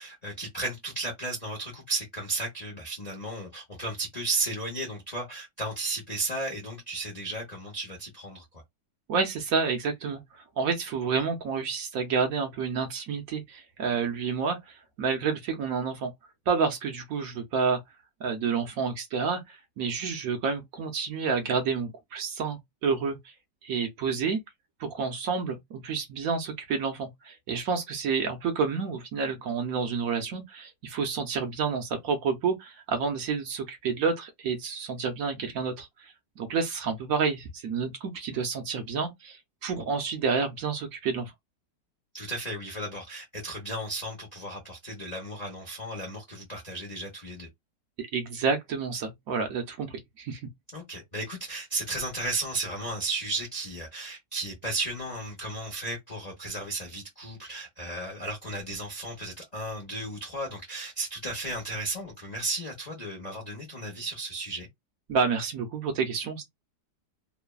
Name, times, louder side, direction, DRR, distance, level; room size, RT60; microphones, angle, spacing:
voice 1, 0.0-8.6 42.1-47.5 50.7-64.7, right 2 dB, 55° left, 0.4 m, -34 dB
voice 2, 9.1-10.2 10.6-16.1 16.5-17.8 18.2-23.3 23.6-24.4 24.8-41.3 48.0-50.4 65.1-66.4, right 5 dB, 65° right, 0.9 m, -29 dB
3.1 x 2.0 x 2.3 m
omnidirectional pair, 1.9 m